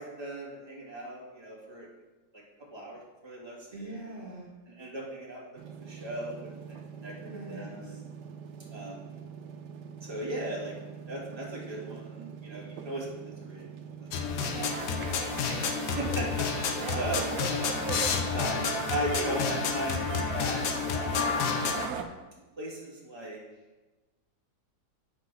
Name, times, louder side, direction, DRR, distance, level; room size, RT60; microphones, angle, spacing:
voice 1, 0.0-1.9 2.7-3.8 4.7-8.0 8.7-9.0 10.0-10.7 11.1-13.7 14.0-14.1 14.4-15.2 16.0-17.2 18.3-20.0 20.3-21.3 22.6-23.4, right 1 dB, 15° right, -4 dB, 2.1 m, -38 dB
voice 2, 3.7-4.5 7.2-8.0 15.7-16.3 17.1-18.3, right 2 dB, 50° right, -4 dB, 1.9 m, -43 dB
sound 1, 5.6-14.8, right 6 dB, 90° right, 1.3 m, -45 dB
sound 2, 14.1-21.9, left 6 dB, 80° left, 1.4 m, -30 dB
sound 3, 14.4-22.0, right 6 dB, 70° right, 1.2 m, -38 dB
7.9 x 5.8 x 5.6 m, 1.2 s
omnidirectional pair, 1.8 m